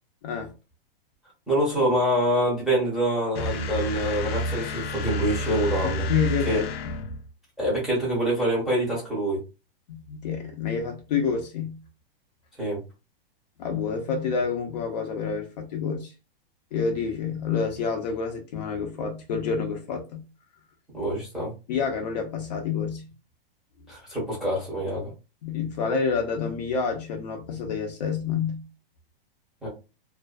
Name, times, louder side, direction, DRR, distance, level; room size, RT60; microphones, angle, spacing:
voice 1, 1.5-6.1 6.4-6.6 7.6-9.4 12.6-12.8 20.9-21.5 23.9-25.1 29.6-29.7, right 1 dB, ahead, 0.8 m, -25 dB
sound 1, 3.3-7.3, equal, 85° left, 0.6 m, -30 dB
voice 2, 5.8-6.9 9.9-11.8 13.6-16.1 16.7-20.2 21.7-23.1 25.4-28.6, left 6 dB, 45° left, 0.6 m, -28 dB
2.5 x 2.2 x 2.3 m
hypercardioid pair, 160°, 30 cm